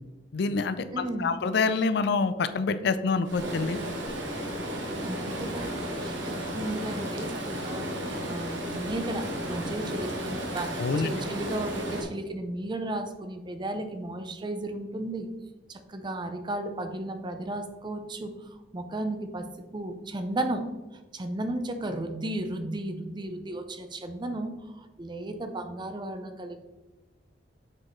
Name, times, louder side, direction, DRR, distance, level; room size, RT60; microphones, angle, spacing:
voice 1, 0.3-3.8 10.8-11.1, left 4 dB, 65° left, 12 dB, 0.4 m, -26 dB
voice 2, 0.9-1.4 5.0-15.3 15.7-20.6 21.1-26.6, right 1 dB, 25° right, 8 dB, 0.6 m, -34 dB
Stream, 3.2-12.0, equal, 90° right, 1.3 m, -33 dB
7.4 x 4.5 x 3.1 m, 1.1 s
head